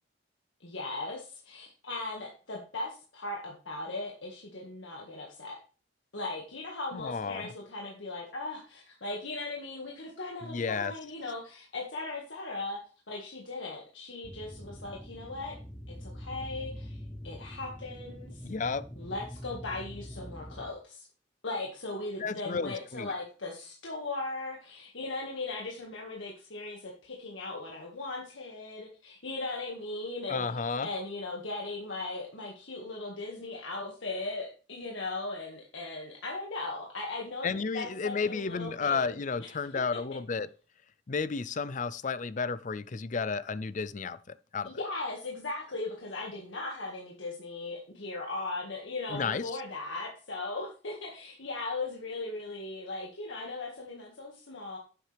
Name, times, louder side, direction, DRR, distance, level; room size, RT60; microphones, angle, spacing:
voice 1, 0.6-5.6 6.1-12.8 13.1-15.6 15.9-17.0 17.2-18.5 19.0-21.1 21.4-39.8 44.6-54.8, left 2 dB, 75° left, 1.9 m, -38 dB
voice 2, 6.9-7.5 10.4-10.9 18.4-18.8 22.2-23.1 30.3-30.9 37.4-40.5 41.1-44.7 49.1-49.6, left 5 dB, 40° left, 0.5 m, -32 dB
sound 1, 14.2-20.7, equal, 5° left, 0.8 m, -44 dB
10.0 x 8.0 x 3.4 m
head